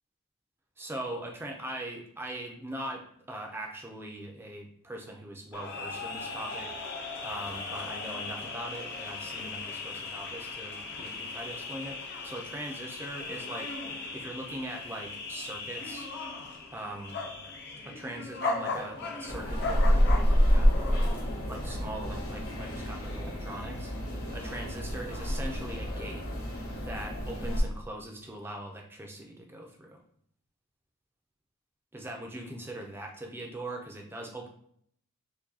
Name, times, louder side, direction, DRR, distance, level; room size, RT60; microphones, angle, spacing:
voice 1, 0.8-6.9 7.2-12.0 12.2-16.1 16.7-17.2 17.8-20.9 21.5-26.2 26.8-30.0 31.9-34.5, right 1 dB, 10° right, 1 dB, 0.4 m, -41 dB
sound 1, 5.5-21.2, left 3 dB, 45° left, 0.5 m, -38 dB
sound 2, 19.2-27.6, equal, 70° left, 1.2 m, -28 dB
4.6 x 2.2 x 2.7 m, 0.66 s
head